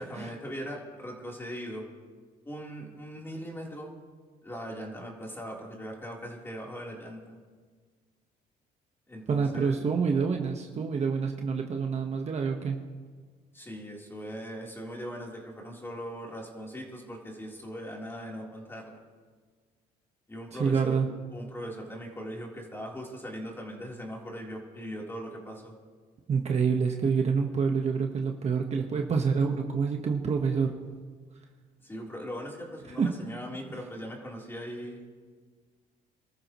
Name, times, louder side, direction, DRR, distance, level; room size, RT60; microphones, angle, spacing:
voice 1, 0.0-1.9 2.5-3.9 4.4-7.4 9.1-9.8 13.5-19.0 20.3-21.0 21.3-25.7 31.8-35.0, equal, 15° left, -2 dB, 3.7 m, -40 dB
voice 2, 9.3-12.8 20.6-21.1 26.3-30.7 33.0-33.1, right 5 dB, 40° right, 2 dB, 1.3 m, -27 dB
27.5 x 14.0 x 3.1 m, 1.6 s
cardioid pair, 110°, 17 cm